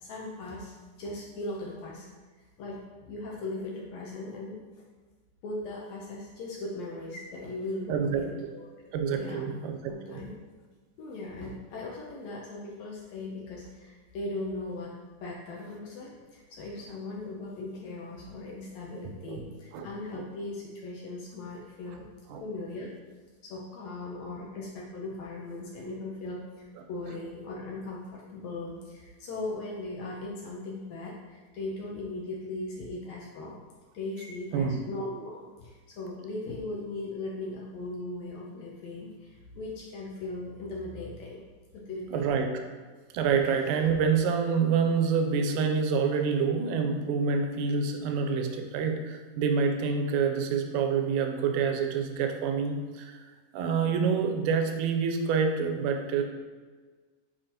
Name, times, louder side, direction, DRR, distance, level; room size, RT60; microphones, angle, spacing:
voice 1, 0.0-0.7 1.0-2.1 2.6-4.6 5.4-8.7 9.1-9.5 9.9-10.3 11.0-14.9 15.2-22.1 22.4-22.9 23.4-33.6 33.9-41.4 41.7-42.4, left 2 dB, 70° left, -3 dB, 1.8 m, -38 dB
voice 2, 7.9-8.2 8.9-10.2 18.9-19.0 19.3-19.4 19.7-19.9 20.1-20.2 22.3-22.4 34.5-34.8 42.1-42.5 43.1-53.2 53.5-56.2, right 6 dB, 80° right, 5 dB, 2.1 m, -27 dB
8.9 x 4.3 x 2.9 m, 1.4 s
omnidirectional pair, 3.8 m